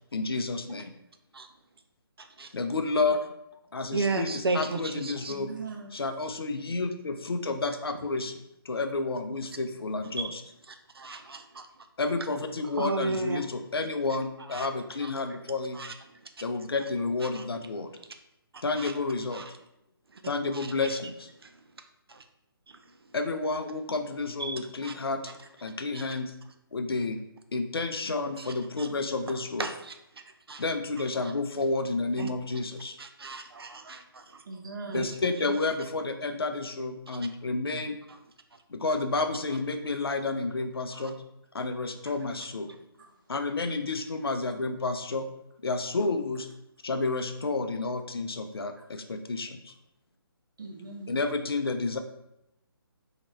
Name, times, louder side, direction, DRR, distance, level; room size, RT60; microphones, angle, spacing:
voice 1, 0.1-0.9 2.5-3.3 3.7-5.5 5.9-10.4 12.0-15.8 16.4-17.9 18.6-19.4 20.3-21.3 23.1-25.2 25.6-26.3 26.7-27.2 27.5-29.7 30.6-33.0 34.9-38.0 38.7-41.2 41.5-42.7 43.3-45.3 45.6-46.5 46.8-49.7 51.1-52.0, left 3 dB, 75° left, 0.5 m, -30 dB
voice 2, 2.2-2.5 3.9-5.3 10.2-10.3 10.7-11.7 12.8-13.4 14.5-14.7 15.0-15.1 15.7-15.9 17.3-17.4 18.8-18.9 19.3-19.5 20.1-20.2 20.5-20.7 21.4-21.5 22.1-22.2 22.7-22.8 24.4-24.9 25.9-26.1 28.8-28.9 29.3-29.9 30.5-30.6 32.2-32.3 33.0-34.4 34.9-35.1 40.9-41.1, right 3 dB, 75° right, 0.5 m, -34 dB
voice 3, 5.3-6.0 34.4-35.0 43.0-43.1 48.8-48.9 50.6-51.2, right 4 dB, 55° right, 0.9 m, -40 dB
4.1 x 2.9 x 3.0 m
figure-of-eight pair, 145°, 13 cm